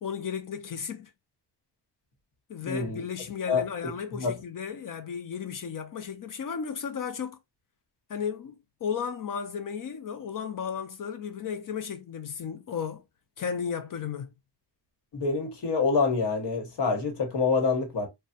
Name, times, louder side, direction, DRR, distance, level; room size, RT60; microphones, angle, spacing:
voice 1, 0.0-1.1 2.5-7.4 8.1-8.5 8.8-13.0 13.4-14.3, left 7 dB, 55° left, 0.4 m, -34 dB
voice 2, 2.6-3.0 3.5-3.6 4.1-4.3 15.1-18.1, left 4 dB, 80° left, 1.1 m, -26 dB
3.3 x 2.2 x 2.6 m
wide cardioid pair, 145°, 41 cm